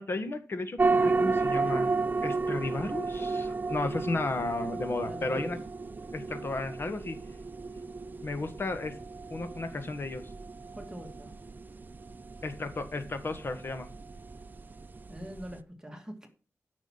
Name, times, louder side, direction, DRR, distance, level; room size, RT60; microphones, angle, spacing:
voice 1, 0.0-1.9 2.2-5.6 6.1-7.2 8.2-8.9 9.3-10.3 12.4-13.9, left 2 dB, 50° left, 9 dB, 1.7 m, -34 dB
sound 1, 0.8-15.6, right 3 dB, 35° right, 0.7 m, -33 dB
voice 2, 5.1-5.5 10.7-11.3 15.1-16.3, equal, 15° right, 3 dB, 2.1 m, -43 dB
9.4 x 6.1 x 7.3 m, 0.37 s
wide cardioid pair, 85°, 5 cm